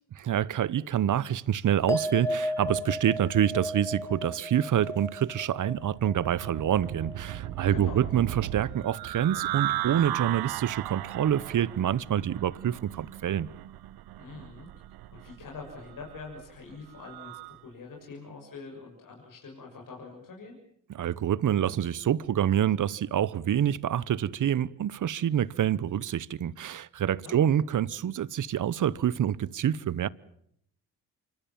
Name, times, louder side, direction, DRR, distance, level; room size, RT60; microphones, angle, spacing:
voice 1, 0.2-13.5 20.9-30.1, right 10 dB, 55° right, 1.0 m, -27 dB
sound 1, 1.9-8.6 8.9-9.5, left 1 dB, 10° left, 1.4 m, -36 dB
sound 2, 5.7-17.6, right 15 dB, 80° right, 1.0 m, -37 dB
voice 2, 7.6-8.0 14.2-14.7 15.1-20.6 27.2-27.5, left 4 dB, 60° left, 6.8 m, -44 dB
26.0 x 24.0 x 7.5 m
supercardioid pair, 65°, 36 cm